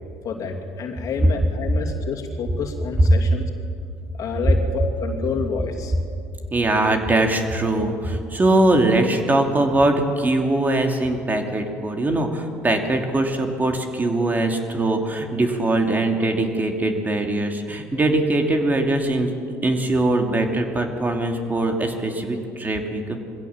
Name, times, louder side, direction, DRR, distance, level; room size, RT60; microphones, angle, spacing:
voice 1, 0.2-3.4 4.2-5.9, left 5 dB, 55° left, 2 dB, 2.8 m, -29 dB
voice 2, 6.5-19.3 19.6-23.2, right 2 dB, 25° right, 4 dB, 2.8 m, -21 dB
22.5 x 16.0 x 7.4 m, 2.4 s
hypercardioid pair, 70°, 7 cm